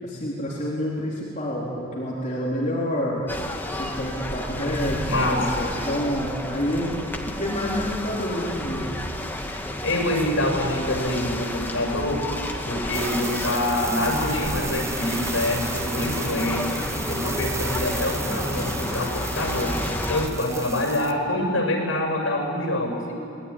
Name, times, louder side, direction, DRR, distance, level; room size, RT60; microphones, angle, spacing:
voice 1, 0.0-3.3 3.7-6.9 7.4-8.9, equal, 35° left, -6 dB, 3.9 m, -28 dB
sound 1, 3.3-20.3, left 1 dB, 10° left, 1.8 m, -31 dB
voice 2, 5.0-5.6 9.6-12.3 12.7-19.8 20.1-23.1, left 1 dB, 75° left, 1 dB, 7.5 m, -26 dB
sound 2, 12.9-21.1, right 4 dB, 15° right, 1.1 m, -35 dB
26.5 x 21.0 x 10.0 m, 2.9 s
head